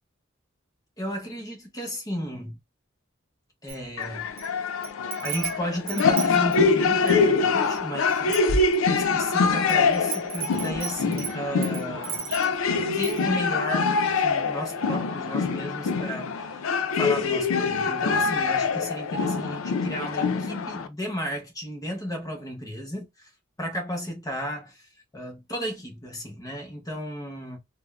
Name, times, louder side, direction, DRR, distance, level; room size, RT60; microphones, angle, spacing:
voice 1, 1.0-2.6 3.6-4.3 5.2-8.4 8.9-12.3 12.9-16.6 16.9-23.3 23.6-27.6, equal, 20° left, 0.7 m, -34 dB
Wind chime, 3.7-4.5 4.8-7.3 7.8-7.9 8.1-9.2 9.7-12.6 13.0-13.3, right 4 dB, 45° right, 0.5 m, -34 dB
sound 1, 4.0-20.9, left 4 dB, 85° left, 0.4 m, -24 dB
3.5 x 2.0 x 2.3 m
head